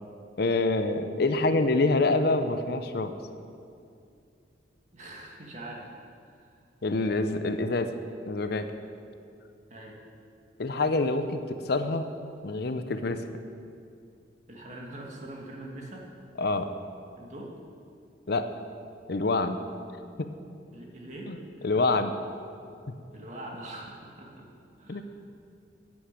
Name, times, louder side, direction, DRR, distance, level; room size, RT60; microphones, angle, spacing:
voice 1, 0.4-3.1 6.8-8.0 8.3-8.7 10.6-12.1 12.4-13.3 16.4-16.7 18.3-18.5 19.1-19.6 20.2-20.3 21.3-21.4 21.6-22.2 22.9-23.0 24.9-25.0, left 2 dB, 55° left, 9 dB, 0.7 m, -26 dB
voice 2, 4.9-5.9 6.3-6.7 9.7-10.0 14.5-16.1 17.2-17.5 20.7-21.7 23.1-24.5 24.8-25.0, right 1 dB, 40° right, -1 dB, 2.1 m, -43 dB
11.5 x 8.6 x 8.3 m, 2.5 s
head